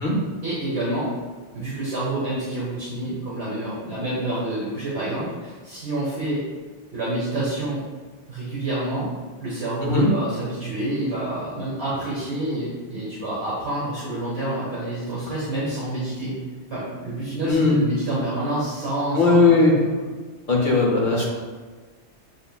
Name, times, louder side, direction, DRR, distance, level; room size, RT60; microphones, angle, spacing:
voice 1, 0.4-1.1 1.5-6.4 6.9-7.8 8.3-9.1 9.4-16.3 16.7-19.9, right 1 dB, 65° right, -8 dB, 1.4 m, -28 dB
voice 2, 17.5-17.8 19.1-19.7 20.5-21.3, left 3 dB, 50° left, -3 dB, 0.9 m, -18 dB
7.1 x 2.7 x 2.2 m, 1.4 s
omnidirectional pair, 1.2 m